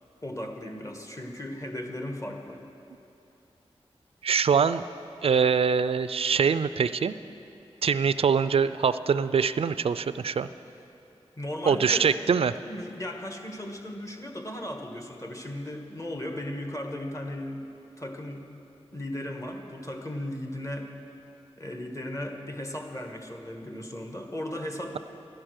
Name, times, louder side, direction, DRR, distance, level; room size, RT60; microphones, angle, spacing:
voice 1, 0.2-2.6 11.4-12.1 12.6-17.6 18.0-18.5 18.9-20.9 21.6-25.0, left 1 dB, 30° left, 4 dB, 1.5 m, -36 dB
voice 2, 4.2-4.8 5.2-7.2 7.8-10.5 11.7-12.5, right 6 dB, 60° right, 14 dB, 0.4 m, -23 dB
13.0 x 10.0 x 6.4 m, 2.7 s
cardioid pair, 50°, 11 cm